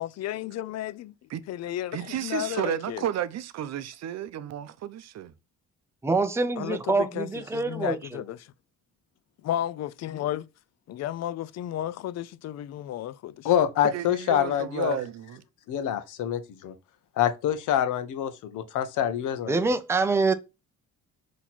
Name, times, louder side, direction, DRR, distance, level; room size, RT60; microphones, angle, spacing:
voice 1, 0.0-1.1 1.5-3.0 6.6-8.5 9.4-10.5 10.9-13.5, left 12 dB, 60° left, 0.4 m, -33 dB
voice 2, 1.9-5.3 13.8-15.4, right 10 dB, 60° right, 0.6 m, -32 dB
voice 3, 6.0-8.0 19.5-20.3, right 3 dB, 10° right, 0.5 m, -25 dB
voice 4, 13.4-15.0 15.7-16.7 17.2-19.7, left 10 dB, 85° left, 0.8 m, -26 dB
4.3 x 3.0 x 4.1 m
cardioid pair, 90°, 30 cm